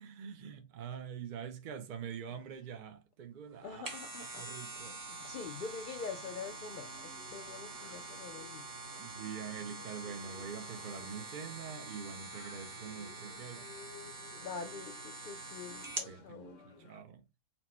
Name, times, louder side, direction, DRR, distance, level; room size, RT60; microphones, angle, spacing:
voice 1, 0.0-3.8 4.3-5.0 9.0-13.7 16.0-17.2, right 7 dB, 55° right, 0.5 m, -45 dB
voice 2, 3.6-4.5 4.9-8.7 14.4-16.6, left 5 dB, 60° left, 0.5 m, -45 dB
sound 1, 3.6-16.2 16.6-16.7, right 3 dB, 40° right, 1.2 m, -45 dB
sound 2, 6.0-17.0, left 3 dB, 85° left, 1.3 m, -57 dB
4.4 x 2.0 x 4.1 m
omnidirectional pair, 1.3 m